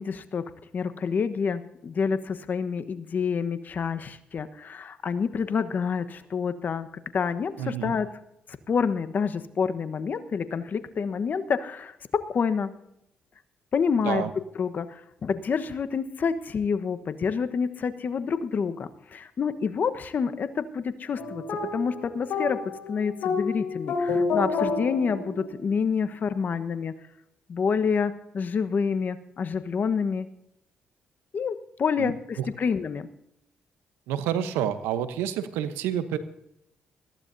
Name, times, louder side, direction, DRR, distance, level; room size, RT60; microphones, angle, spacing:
voice 1, 0.0-8.1 8.7-12.7 13.7-14.3 14.6-21.4 21.7-22.6 22.9-26.9 27.5-30.3 31.3-33.1, left 6 dB, 55° left, 10 dB, 1.2 m, -28 dB
voice 2, 7.6-7.9 14.0-14.3 32.0-32.1 32.4-32.5 34.1-36.2, right 10 dB, 90° right, 11 dB, 0.9 m, -28 dB
sound 1, 21.2-25.8, left 4 dB, 75° left, 5.1 m, -29 dB
21.0 x 15.0 x 2.7 m, 0.81 s
supercardioid pair, 55°, 4 cm